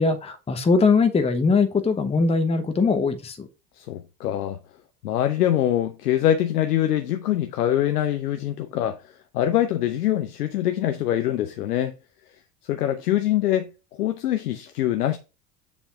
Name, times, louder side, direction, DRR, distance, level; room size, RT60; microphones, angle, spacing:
voice 1, 0.0-3.5, left 4 dB, 15° left, 0.9 m, -21 dB
voice 2, 3.8-4.6 5.0-11.9 12.6-13.7 14.0-15.2, left 12 dB, 75° left, 0.7 m, -24 dB
7.1 x 3.5 x 5.3 m
figure-of-eight pair, 75°, 47 cm